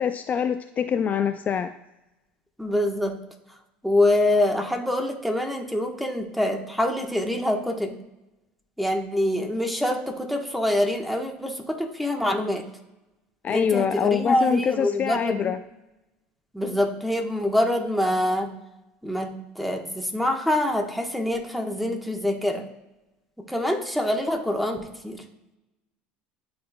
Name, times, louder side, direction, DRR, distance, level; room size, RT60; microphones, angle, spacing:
voice 1, 0.0-1.7 13.4-15.6, left 7 dB, 35° left, 10 dB, 0.3 m, -24 dB
voice 2, 2.6-3.2 3.8-8.0 8.8-12.7 13.5-15.5 16.5-18.5 19.0-22.7 23.4-25.2, left 1 dB, ahead, 2 dB, 1.1 m, -25 dB
11.0 x 3.9 x 2.2 m, 0.96 s
hypercardioid pair, 85°, 5 cm